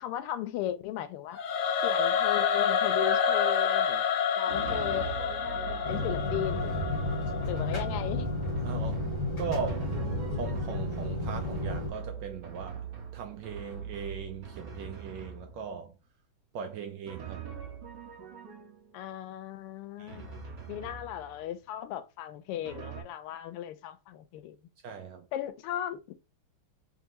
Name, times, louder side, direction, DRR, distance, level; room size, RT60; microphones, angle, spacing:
voice 1, 0.0-1.4 1.8-4.0 4.4-5.3 5.9-6.8 7.5-8.3 18.9-24.6 25.3-26.1, left 11 dB, 90° left, 1.5 m, -36 dB
Singing / Musical instrument, 1.3-8.4, left 7 dB, 70° left, 1.0 m, -29 dB
Drum, 4.5-15.8 17.1-19.0 20.1-21.6 22.6-23.0, right 6 dB, 60° right, 1.5 m, -42 dB
sound 1, 5.8-11.9, left 2 dB, 30° left, 1.2 m, -32 dB
voice 2, 8.6-9.1 9.4-9.9 10.3-12.9 13.1-16.0 16.5-17.5 20.0-20.3 24.8-25.3, right 6 dB, 75° right, 1.1 m, -39 dB
3.5 x 3.4 x 2.9 m
omnidirectional pair, 2.4 m